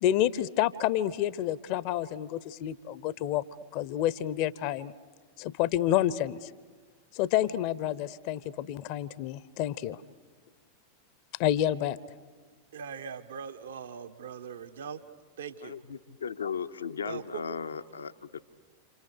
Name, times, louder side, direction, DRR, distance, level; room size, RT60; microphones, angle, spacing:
voice 1, 0.0-3.4 3.7-4.9 5.4-6.5 7.1-10.0 11.4-12.0, left 12 dB, 45° left, 0.9 m, -29 dB
voice 2, 12.7-15.0 15.4-15.7 17.0-17.4, right 7 dB, 65° right, 1.4 m, -40 dB
voice 3, 15.6-18.4, left 6 dB, 70° left, 0.9 m, -36 dB
28.5 x 28.0 x 6.8 m
figure-of-eight pair, 90°, 0 cm